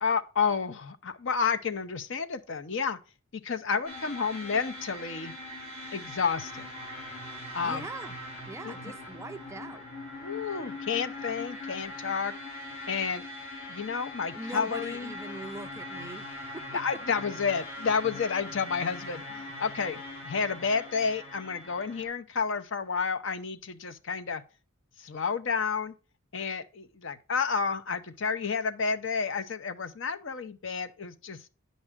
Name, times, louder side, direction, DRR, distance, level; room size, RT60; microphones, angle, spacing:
voice 1, 0.0-3.0 3.4-5.3 5.9-6.7 7.5-7.9 8.7-8.8 10.2-12.3 12.9-13.2 13.7-15.1 16.7-24.4 25.0-25.9 26.3-31.4, left 5 dB, 55° left, 0.6 m, -30 dB
sound 1, 3.8-22.1, left 1 dB, 30° left, 3.3 m, -41 dB
voice 2, 7.6-8.2 8.5-9.9 14.3-16.3 16.5-16.8, right 2 dB, 15° right, 0.3 m, -41 dB
9.8 x 5.3 x 3.5 m
head